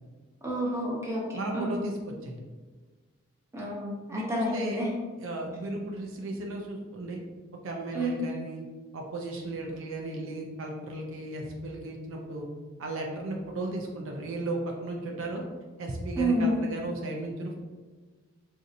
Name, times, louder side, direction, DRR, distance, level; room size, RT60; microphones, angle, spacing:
voice 1, 0.4-1.2 1.5-1.7 3.5-4.9 7.9-8.1 16.2-16.6, right 1 dB, 15° right, -4 dB, 0.6 m, -29 dB
voice 2, 1.3-2.4 4.1-4.8 5.2-7.2 7.6-8.6 8.9-12.5 12.8-15.4 15.8-17.6, right 2 dB, 60° right, 0 dB, 0.4 m, -35 dB
4.0 x 2.6 x 2.5 m, 1.3 s
head